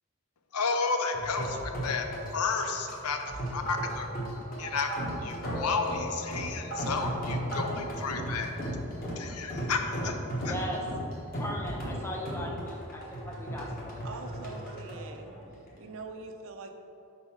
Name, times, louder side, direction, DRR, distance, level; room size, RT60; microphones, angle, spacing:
voice 1, 0.5-2.1 2.3-3.2 3.5-4.1 4.6-4.9 5.2-8.5 9.2-10.2 10.4-10.5, left 4 dB, 85° left, 5 dB, 0.6 m, -32 dB
sound 1, 1.1-16.0, equal, 40° left, 1.2 m, -36 dB
voice 2, 10.4-10.8 11.3-14.1, equal, 10° left, -1 dB, 0.7 m, -38 dB
voice 3, 14.0-15.3 15.8-16.7, right 3 dB, 65° right, 5 dB, 0.5 m, -43 dB
4.8 x 4.1 x 5.8 m, 2.7 s
head